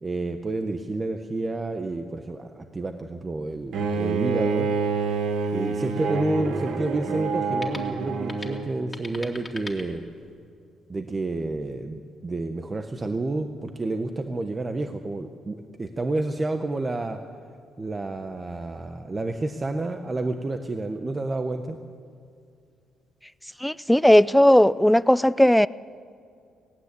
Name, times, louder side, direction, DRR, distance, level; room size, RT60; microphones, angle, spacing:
voice 1, 0.0-4.7 5.5-10.0 10.9-17.2 17.8-21.8, right 2 dB, 30° right, 6 dB, 1.1 m, -30 dB
Bowed string instrument, 3.7-8.8, right 4 dB, 75° right, 1.8 m, -27 dB
sound 1, 7.0-10.5, left 2 dB, 20° left, 2.6 m, -44 dB
voice 2, 23.6-25.7, left 1 dB, 5° left, 17 dB, 0.5 m, -17 dB
18.5 x 17.5 x 8.3 m, 2.3 s
cardioid pair, 90°, 0 cm